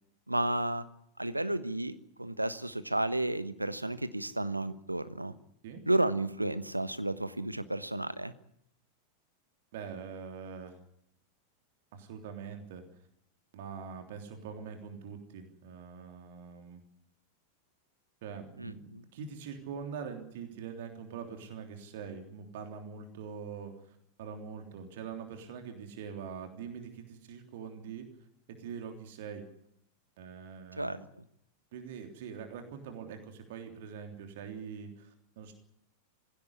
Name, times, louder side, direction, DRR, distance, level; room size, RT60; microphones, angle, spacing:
voice 1, 0.3-0.9 1.2-5.3 5.9-8.3 18.6-19.0 30.8-31.2, right 1 dB, 85° right, 13 dB, 1.2 m, -32 dB
voice 2, 9.7-10.8 11.9-12.8 13.5-16.8 18.2-28.1 28.6-29.5 30.2-31.0 31.7-35.5, right 6 dB, 55° right, 5 dB, 3.3 m, -43 dB
19.5 x 16.5 x 9.9 m, 0.76 s
figure-of-eight pair, 90°, 0 cm